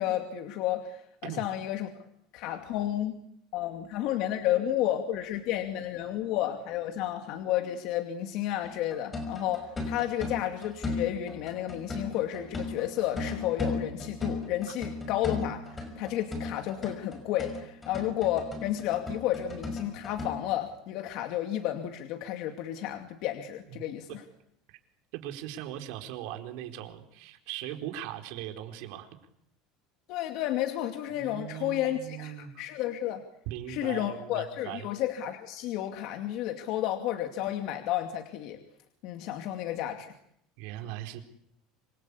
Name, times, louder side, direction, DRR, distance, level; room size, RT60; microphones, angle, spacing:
voice 1, 0.0-1.9 2.3-3.2 3.5-15.6 16.0-24.2 30.1-33.2 33.7-38.6 39.0-40.1, left 12 dB, 55° left, 6 dB, 2.4 m, -31 dB
sound 1, 8.6-20.3, left 3 dB, 15° left, 5.8 m, -36 dB
voice 2, 25.1-29.1 31.2-32.5 33.5-34.8 40.6-41.2, right 12 dB, 65° right, 5 dB, 4.4 m, -39 dB
27.0 x 23.5 x 8.5 m, 0.72 s
cardioid pair, 160°, 0 cm